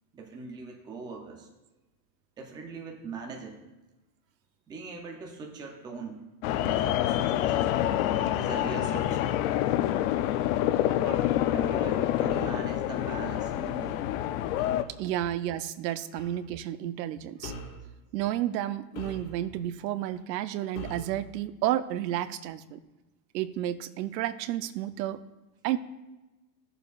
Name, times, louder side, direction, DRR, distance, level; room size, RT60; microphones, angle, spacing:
voice 1, 0.1-1.5 2.4-3.6 4.7-6.2 6.5-7.9 8.3-9.4 10.9-14.0, right 4 dB, 10° right, 2 dB, 0.4 m, -41 dB
sound 1, 6.4-14.8, left 12 dB, 55° left, 0.5 m, -27 dB
sound 2, 12.3-12.7 14.6-14.9 16.2-16.4 17.4-17.8 18.9-19.6 20.7-21.2, left 1 dB, 85° left, 2.5 m, -42 dB
voice 2, 15.0-17.5 18.1-22.8 23.3-25.2 25.6-25.8, right 12 dB, 80° right, 13 dB, 0.7 m, -31 dB
14.0 x 6.9 x 2.4 m, 1.1 s
supercardioid pair, 150°, 50 cm